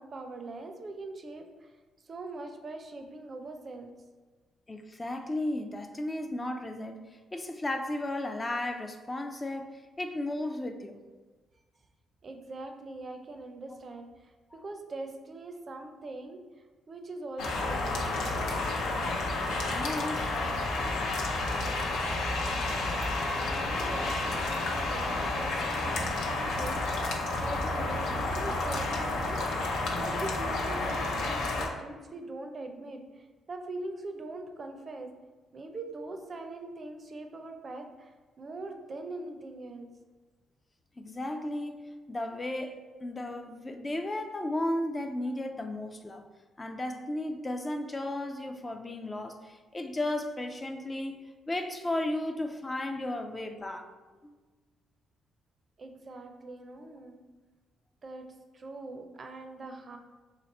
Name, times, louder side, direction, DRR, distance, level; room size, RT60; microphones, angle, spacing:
voice 1, 0.0-1.7 2.0-3.9 12.2-14.3 14.6-16.4 16.9-18.0 23.4-35.1 35.5-39.9 55.8-57.2 58.0-60.0, right 2 dB, 40° right, 0.4 m, -42 dB
voice 2, 4.7-11.0 13.7-13.8 14.5-14.6 19.7-20.4 41.0-46.3 46.6-53.9 54.2-54.4, left 1 dB, 20° left, 0.3 m, -34 dB
sound 1, 17.4-31.7, left 2 dB, 85° left, 0.6 m, -30 dB
3.1 x 3.0 x 4.0 m
cardioid pair, 90°, 0 cm